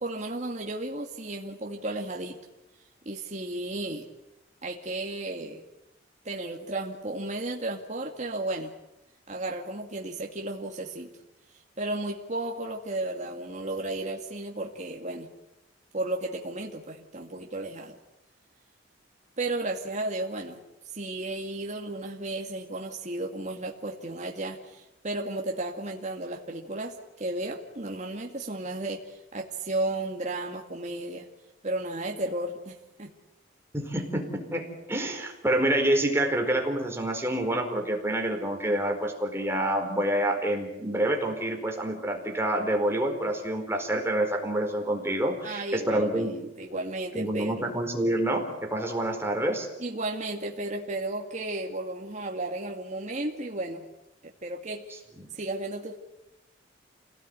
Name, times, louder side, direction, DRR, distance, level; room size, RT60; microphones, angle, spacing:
voice 1, 0.0-2.4 3.1-4.1 4.6-5.6 6.2-8.7 9.3-11.1 11.8-15.3 15.9-18.0 19.4-20.6 20.8-31.3 31.6-32.7 33.0-33.1 45.4-47.7 49.8-53.8 54.2-54.8 55.3-56.0, right 2 dB, 40° right, 1 dB, 2.3 m, -34 dB
voice 2, 33.7-46.3 47.1-49.7, right 1 dB, 15° right, 2 dB, 4.6 m, -27 dB
28.5 x 18.0 x 9.7 m, 0.91 s
head